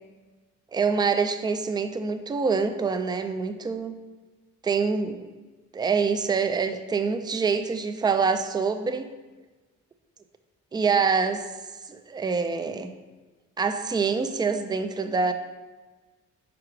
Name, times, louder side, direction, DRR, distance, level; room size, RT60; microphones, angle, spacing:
voice 1, 0.7-4.0 4.6-5.3 5.7-9.1 10.7-11.5 11.9-12.9 13.6-15.3, right 5 dB, 15° right, 8 dB, 0.4 m, -25 dB
4.8 x 4.7 x 4.7 m, 1.3 s
cardioid pair, 90°, 30 cm